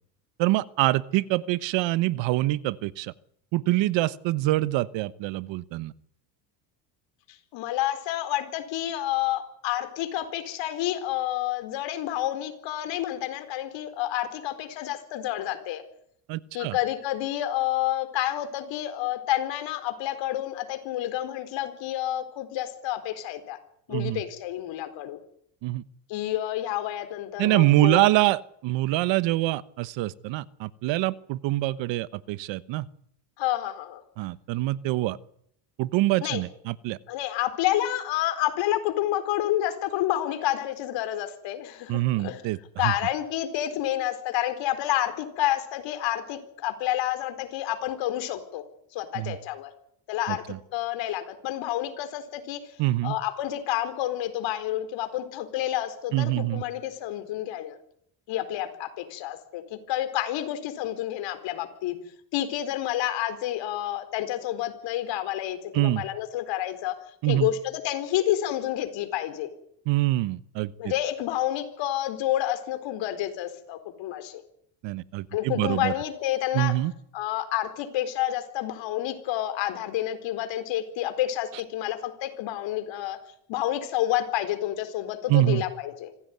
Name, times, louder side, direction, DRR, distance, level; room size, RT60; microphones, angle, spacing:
voice 1, 0.4-3.1 3.5-5.9 16.3-16.8 23.9-24.2 25.6-25.8 27.4-32.9 34.2-35.2 35.8-37.0 41.9-42.9 49.1-49.4 50.3-50.6 52.8-53.2 56.1-56.6 65.7-66.0 67.2-67.5 69.9-70.9 74.8-75.9 76.5-76.9 85.3-85.6, right 17 dB, 65° right, 17 dB, 1.2 m, -25 dB
voice 2, 7.5-15.8 16.5-23.6 23.9-25.2 26.1-28.0 33.4-34.0 36.2-36.4 37.1-42.4 42.8-48.6 48.9-49.7 50.1-50.4 50.7-52.6 53.0-57.8 58.3-62.0 62.3-66.9 67.3-69.5 70.8-74.4 75.3-76.7 77.1-83.2 83.5-86.1, left 13 dB, 65° left, 10 dB, 4.3 m, -29 dB
26.0 x 16.5 x 9.5 m, 0.71 s
cardioid pair, 120°, 48 cm